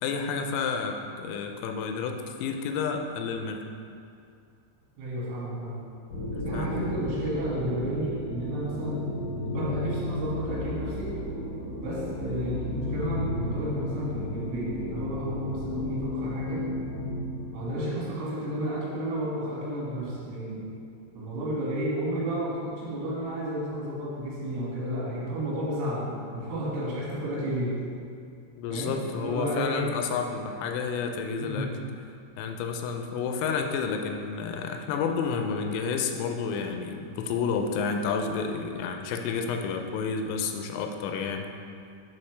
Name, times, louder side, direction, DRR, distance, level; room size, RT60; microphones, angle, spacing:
voice 1, 0.0-3.6 6.3-6.7 28.6-31.7 32.4-41.5, left 5 dB, 90° left, 4 dB, 3.2 m, -30 dB
voice 2, 5.0-5.8 6.5-9.0 9.4-11.1 11.8-16.7 17.5-20.6 21.2-27.8 28.7-29.9 31.4-31.7, right 1 dB, 85° right, -7 dB, 4.5 m, -32 dB
sound 1, 6.1-18.1, left 1 dB, 70° left, 2.0 m, -33 dB
10.5 x 4.1 x 3.3 m, 2.4 s
omnidirectional pair, 5.7 m